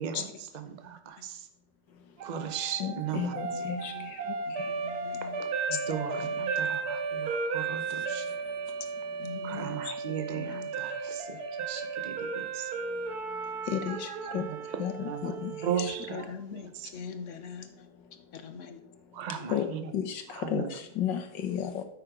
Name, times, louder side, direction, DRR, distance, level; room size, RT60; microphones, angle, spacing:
voice 1, 0.0-1.5 2.2-3.3 3.6-3.7 5.2-8.3 9.4-12.7 14.7-16.2 16.5-16.9 19.1-19.8 20.3-20.7, right 8 dB, 45° right, 0.6 m, -37 dB
sound 1, 2.2-16.3, right 4 dB, 60° right, 1.3 m, -35 dB
voice 2, 2.8-3.9 4.6-4.7 13.7-14.5 14.8-15.5 15.8-15.9 19.5-19.7 19.9-21.8, left 9 dB, 75° left, 1.7 m, -33 dB
voice 3, 3.5-4.1 4.5-5.4 6.4-6.5 9.2-9.9 10.4-10.7 16.1-17.7 18.3-18.8, left 6 dB, 60° left, 0.9 m, -41 dB
8.8 x 6.0 x 5.0 m
omnidirectional pair, 2.0 m